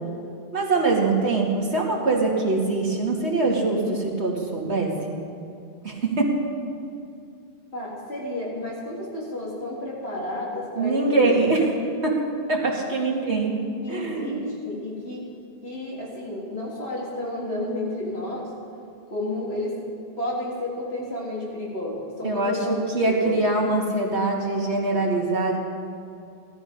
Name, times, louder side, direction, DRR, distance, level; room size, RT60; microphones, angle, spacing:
voice 1, 0.5-5.2 5.8-6.4 10.8-11.7 12.0-12.2 12.5-13.6 13.9-14.4 22.2-25.6, right 3 dB, 85° right, -2 dB, 2.5 m, -23 dB
voice 2, 7.7-11.6 13.8-15.3 15.6-18.5 19.1-19.8 20.2-22.8 23.1-23.4, left 1 dB, 65° left, -5 dB, 3.9 m, -31 dB
16.5 x 13.0 x 5.4 m, 2.5 s
omnidirectional pair, 1.1 m